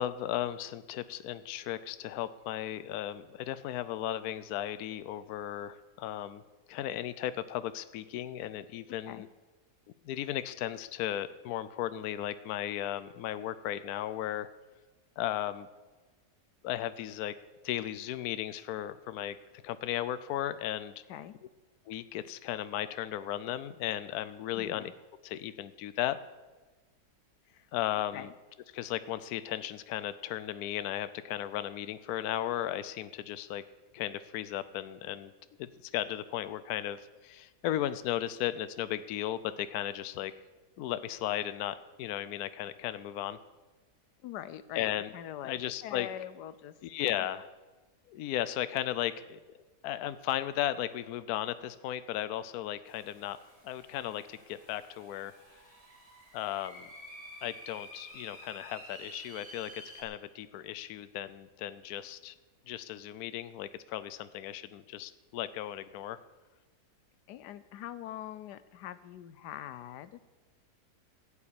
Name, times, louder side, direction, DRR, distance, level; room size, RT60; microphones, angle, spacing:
voice 1, 0.0-6.4 6.7-9.3 10.0-14.5 15.2-15.7 16.6-17.3 17.6-19.4 19.6-20.9 21.9-24.9 25.2-26.2 27.7-28.3 28.7-33.6 33.9-35.3 35.6-40.3 40.8-43.4 44.7-45.1 45.4-46.1 46.8-47.5 48.1-49.4 49.8-53.4 53.6-55.3 56.3-56.9 57.4-62.3 62.7-66.2, left 12 dB, 70° left, 14 dB, 1.1 m, -35 dB
voice 2, 24.5-24.9 27.5-27.7 28.1-28.3 44.2-45.5 45.8-46.7 67.3-70.2, left 12 dB, 90° left, 15 dB, 1.3 m, -43 dB
sound 1, 52.9-60.0, equal, 20° right, 2.6 m, -51 dB
14.5 x 7.2 x 8.7 m, 1.2 s
omnidirectional pair, 1.7 m